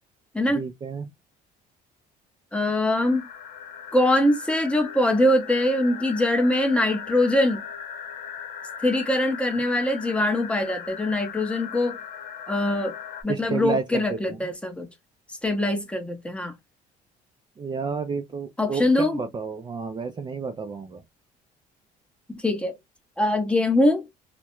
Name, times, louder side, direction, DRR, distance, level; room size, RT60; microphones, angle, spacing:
voice 1, 0.5-1.1 13.3-14.4 17.6-21.0, right 5 dB, 25° right, 0.4 m, -31 dB
voice 2, 2.5-3.3 3.9-7.6 8.8-12.0 12.5-12.9 13.2-14.9 15.4-16.5 18.6-19.2 22.3-22.7 23.2-24.1, left 1 dB, 5° left, 0.7 m, -23 dB
sound 1, 2.9-13.2, left 7 dB, 90° left, 0.7 m, -38 dB
2.3 x 2.1 x 2.9 m
cardioid pair, 110°, 17 cm